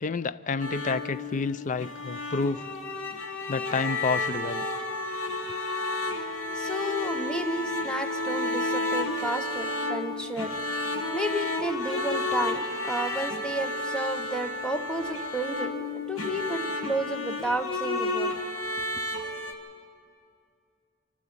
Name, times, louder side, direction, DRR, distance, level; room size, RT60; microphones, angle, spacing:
voice 1, 0.0-2.7 3.5-4.7, left 4 dB, 35° left, 16 dB, 0.4 m, -29 dB
sound 1, 0.6-19.5, left 2 dB, 70° left, 1.6 m, -31 dB
voice 2, 6.5-10.6 11.1-18.4, right 1 dB, 5° left, 5 dB, 0.9 m, -32 dB
25.5 x 12.0 x 8.6 m, 2.4 s
head